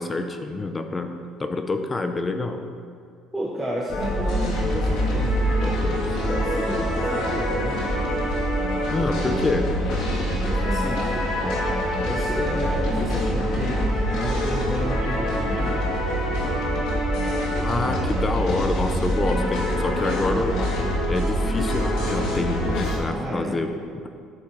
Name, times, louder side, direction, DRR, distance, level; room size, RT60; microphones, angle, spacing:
voice 1, 0.0-2.7 8.9-9.6 17.6-20.5 21.1-24.1, left 3 dB, 20° left, 7 dB, 0.6 m, -27 dB
voice 2, 3.3-7.9 10.4-11.1 12.0-15.7 23.1-23.6, equal, ahead, -5 dB, 1.0 m, -31 dB
sound 1, 3.9-23.0, equal, 75° left, 2.0 m, -24 dB
10.5 x 7.1 x 3.3 m, 2.3 s
cardioid pair, 125°, 0 cm